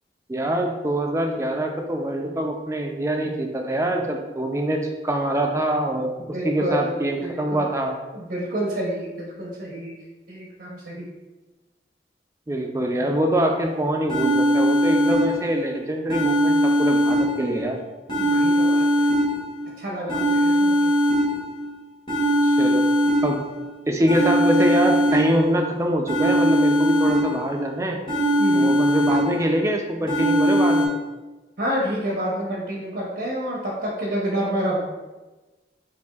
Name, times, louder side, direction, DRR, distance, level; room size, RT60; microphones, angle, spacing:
voice 1, 0.3-6.1 6.4-7.9 12.5-17.8 22.4-22.8 23.2-23.4 23.9-28.0 28.5-30.9, right 1 dB, 15° right, 2 dB, 0.4 m, -24 dB
voice 2, 6.2-7.7 8.1-10.0 10.3-11.1 18.2-19.1 19.8-20.9 28.4-28.7 31.6-34.8, equal, 70° right, -4 dB, 0.9 m, -28 dB
sound 1, 13.7-13.8 14.1-15.7 16.1-17.7 18.1-19.7 20.1-21.7 22.1-23.7 24.1-25.7 26.1-27.7 28.1-29.7 30.1-30.9, equal, 25° left, 0.9 m, -21 dB
7.0 x 2.6 x 2.3 m, 1.2 s
head